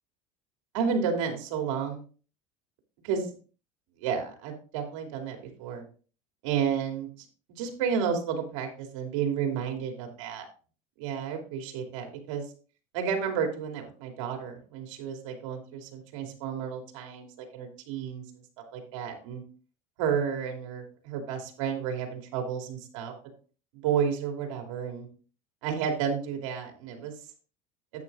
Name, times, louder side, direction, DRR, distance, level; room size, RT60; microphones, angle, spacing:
voice 1, 0.7-2.0 3.0-3.3 4.0-5.8 6.4-7.1 7.6-10.5 11.0-12.4 12.9-18.2 18.7-19.4 20.0-23.1 23.8-25.1 25.6-27.1, right 7 dB, 80° right, 3 dB, 2.8 m, -31 dB
11.0 x 9.2 x 2.4 m, 0.39 s
supercardioid pair, 140°, 17 cm